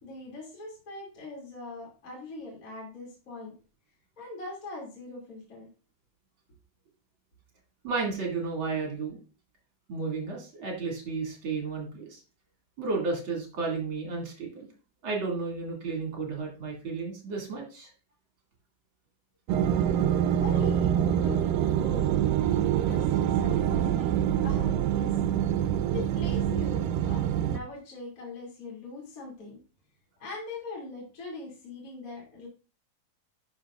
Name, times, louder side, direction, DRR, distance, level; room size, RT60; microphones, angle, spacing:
voice 1, 0.0-3.5 4.2-5.7 20.3-24.1 24.4-25.2 25.6-29.6 30.2-32.5, left 3 dB, 25° left, -3 dB, 2.5 m, -42 dB
voice 2, 7.8-9.2 9.9-12.2 12.8-14.7 15.0-17.9, right 4 dB, 40° right, 0 dB, 2.6 m, -32 dB
sound 1, 19.5-27.6, right 10 dB, 90° right, 2.2 m, -25 dB
11.5 x 6.0 x 2.4 m, 0.33 s
omnidirectional pair, 3.8 m